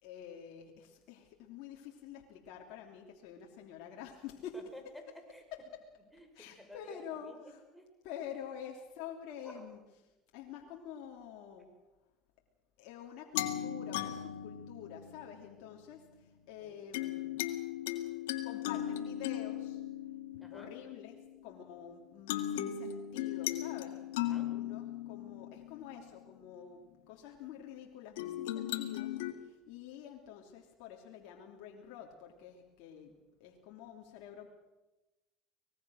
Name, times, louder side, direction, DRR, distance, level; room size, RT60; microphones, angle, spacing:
voice 1, 0.0-4.5 6.3-7.6 8.0-9.8 10.3-11.7 12.8-16.0 16.5-17.4 18.4-19.8 20.5-21.2 21.4-24.0 24.3-26.8 27.1-29.2 29.7-34.5, left 9 dB, 70° left, 0 dB, 3.0 m, -48 dB
voice 2, 4.5-5.4 6.1-7.9 9.4-9.7 16.6-16.8 20.4-20.7 24.2-24.5, left 1 dB, ahead, 5 dB, 5.7 m, -53 dB
sound 1, 13.3-15.6 16.9-21.7 22.3-26.4 28.2-29.3, left 12 dB, 85° left, 1.9 m, -38 dB
24.0 x 20.0 x 6.4 m, 1.1 s
supercardioid pair, 95°, 0 cm